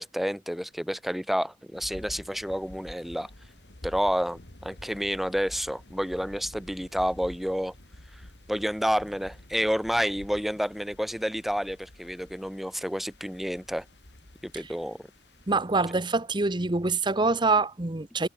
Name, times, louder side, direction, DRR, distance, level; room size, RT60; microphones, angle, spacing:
voice 1, 0.0-3.3 3.8-7.7 8.5-13.8 14.4-15.0, equal, ahead, 1.1 m, -29 dB
sound 1, 1.7-15.6, left 1 dB, 75° left, 3.2 m, -49 dB
voice 2, 15.5-18.3, right 3 dB, 25° right, 1.1 m, -25 dB
head